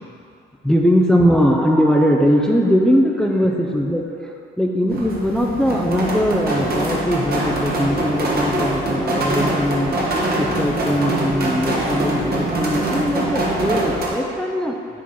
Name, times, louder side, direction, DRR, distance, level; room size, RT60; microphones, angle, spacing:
voice 1, 0.6-10.0 10.4-14.8, equal, 5° left, 1 dB, 0.5 m, -20 dB
sound 1, 4.9-14.1, right 1 dB, 50° right, 1.5 m, -23 dB
7.1 x 4.5 x 4.3 m, 2.4 s
cardioid pair, 90°, 20 cm